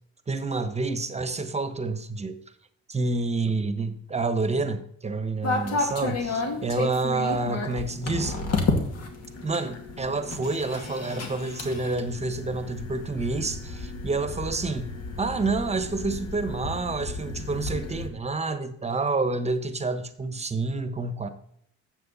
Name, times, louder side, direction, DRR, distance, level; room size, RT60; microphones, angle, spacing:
voice 1, 0.3-2.4 2.9-8.4 9.4-21.3, right 3 dB, 20° right, 1.1 m, -28 dB
sound 1, 5.4-18.1, left 3 dB, 55° left, 2.3 m, -32 dB
12.5 x 7.9 x 4.1 m
cardioid pair, 100°, 29 cm